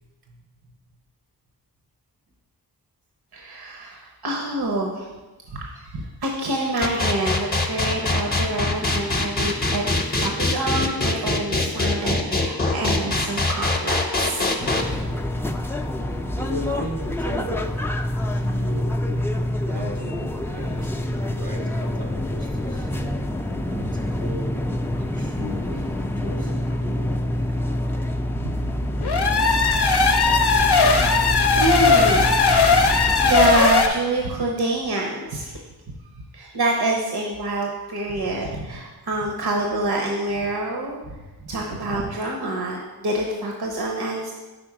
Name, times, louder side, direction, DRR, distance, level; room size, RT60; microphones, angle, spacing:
voice 1, 3.3-5.1 5.5-9.8 10.2-15.0 28.4-28.5 31.6-35.6 36.2-41.2 41.4-44.3, right 2 dB, 70° right, 0 dB, 0.7 m, -26 dB
sound 1, 6.8-14.8, left 2 dB, 25° left, 0.7 m, -22 dB
sound 2, 14.6-33.6, left 1 dB, 5° left, 0.3 m, -26 dB
voice 2, 16.4-17.7 18.3-18.9 19.6-22.9 23.5-24.7 25.0-25.9 26.2-27.3 28.5-28.7 41.2-41.3, equal, 85° right, 1 dB, 1.1 m, -36 dB
sound 3, 29.0-33.9, left 4 dB, 80° left, 0.6 m, -18 dB
5.1 x 3.9 x 4.8 m, 1.2 s
wide cardioid pair, 45°, 39 cm